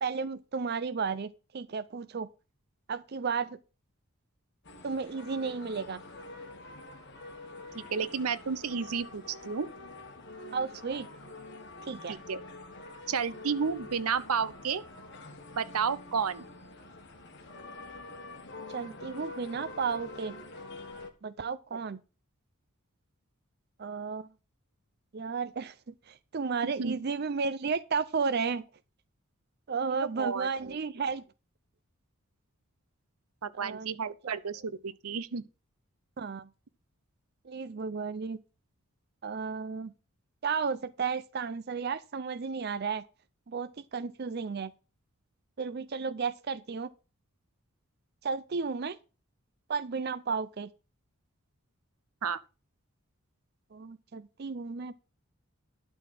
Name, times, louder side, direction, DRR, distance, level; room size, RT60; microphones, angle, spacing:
voice 1, 0.0-2.3 2.9-3.6 4.8-6.0 10.5-11.1 11.8-12.1 18.7-20.3 21.2-22.0 23.8-24.3 25.1-28.6 29.7-31.2 33.5-33.9 34.2-34.4 36.2-36.5 37.4-38.4 39.2-39.9 40.4-43.0 43.5-44.7 45.6-46.9 48.2-49.0 49.7-50.7 53.7-54.9, right 5 dB, 45° right, 0.5 m, -33 dB
sound 1, 4.6-21.1, left 2 dB, 50° left, 1.6 m, -46 dB
voice 2, 7.7-9.7 12.1-12.4 13.1-14.8 15.6-16.5 26.6-27.0 30.0-30.7 33.4-35.4 52.2-52.4, right 6 dB, 85° right, 0.7 m, -32 dB
12.0 x 4.1 x 7.4 m
head